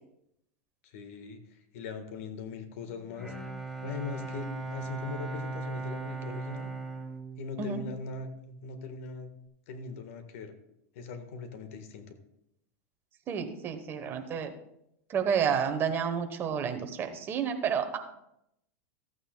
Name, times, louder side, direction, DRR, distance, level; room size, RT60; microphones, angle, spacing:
voice 1, 0.8-1.4 1.7-3.3 3.8-6.7 7.4-9.3 9.7-10.5 10.9-12.2, left 4 dB, 60° left, 7 dB, 1.4 m, -40 dB
Bowed string instrument, 2.9-8.7, right 3 dB, ahead, 1.1 m, -38 dB
voice 2, 13.3-14.5 15.1-18.0, right 7 dB, 25° right, 6 dB, 1.0 m, -30 dB
14.0 x 8.9 x 2.3 m, 0.79 s
supercardioid pair, 145°, 8 cm